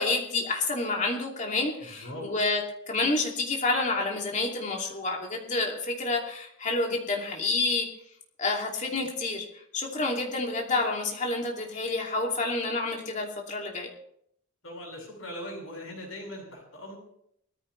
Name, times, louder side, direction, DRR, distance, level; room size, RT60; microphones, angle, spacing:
voice 1, 0.0-7.9 8.4-9.5 9.7-13.9, left 3 dB, 35° left, 0 dB, 2.8 m, -29 dB
voice 2, 14.6-17.0, left 1 dB, 65° left, -1 dB, 7.6 m, -40 dB
19.5 x 14.0 x 3.3 m, 0.71 s
head